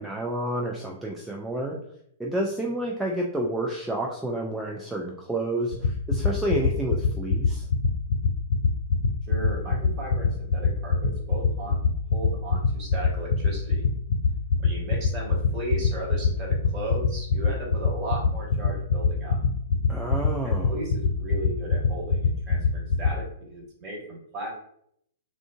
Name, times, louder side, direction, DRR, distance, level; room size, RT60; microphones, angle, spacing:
voice 1, 0.0-1.8 2.2-7.7 19.9-20.7, right 1 dB, 5° right, -2 dB, 0.4 m, -29 dB
sound 1, 5.7-23.1, left 6 dB, 65° left, 0.3 m, -21 dB
voice 2, 9.3-11.8 12.1-13.8 14.6-19.4 20.4-24.5, right 1 dB, 25° right, -3 dB, 1.3 m, -36 dB
3.6 x 2.4 x 2.3 m, 0.69 s
figure-of-eight pair, 105°, 0 cm